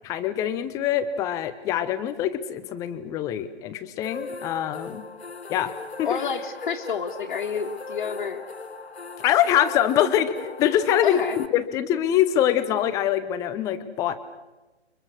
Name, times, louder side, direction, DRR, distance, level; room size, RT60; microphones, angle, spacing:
voice 1, 0.0-5.0 5.5-5.7 6.0-6.2 9.2-14.2, left 11 dB, 10° left, 12 dB, 0.8 m, -24 dB
sound 1, 4.0-11.5, left 3 dB, 75° left, 1.6 m, -38 dB
voice 2, 6.0-8.4 11.0-11.4, left 6 dB, 50° left, -2 dB, 2.0 m, -29 dB
30.0 x 24.0 x 6.4 m, 1.1 s
figure-of-eight pair, 135°, 33 cm